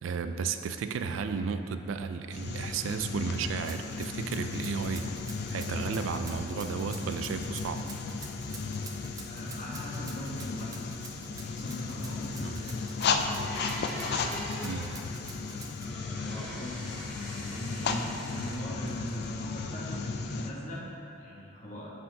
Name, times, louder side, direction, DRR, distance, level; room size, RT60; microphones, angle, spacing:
voice 1, 0.0-5.1 5.5-7.8 12.4-12.6 14.6-14.9, right 5 dB, 85° right, 9 dB, 0.3 m, -33 dB
sound 1, 2.3-20.5, left 4 dB, 55° left, 0.3 m, -35 dB
Rattle (instrument), 3.6-15.9, right 4 dB, 20° right, 0.5 m, -48 dB
voice 2, 9.2-10.8 11.5-12.8 16.3-16.8 17.5-20.8 21.2-21.9, equal, 40° left, -6 dB, 1.2 m, -40 dB
sound 2, 13.2-14.9 15.8-18.6 18.9-19.6, equal, 5° left, 1.0 m, -43 dB
9.4 x 4.1 x 2.8 m, 2.8 s
head